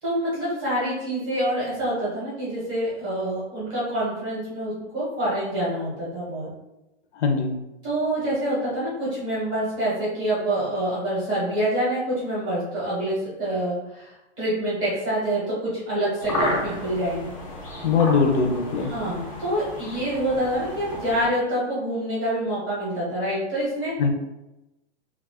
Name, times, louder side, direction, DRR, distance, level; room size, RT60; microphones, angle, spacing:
voice 1, 0.0-6.5 7.8-17.3 18.9-23.9, right 1 dB, 15° right, -8 dB, 0.6 m, -26 dB
voice 2, 7.1-7.6 17.8-18.9 24.0-24.1, left 5 dB, 80° left, 4 dB, 0.6 m, -21 dB
sound 1, 16.2-21.3, left 1 dB, 30° left, 0.4 m, -32 dB
2.3 x 2.1 x 3.4 m, 0.95 s
hypercardioid pair, 170°, 35 cm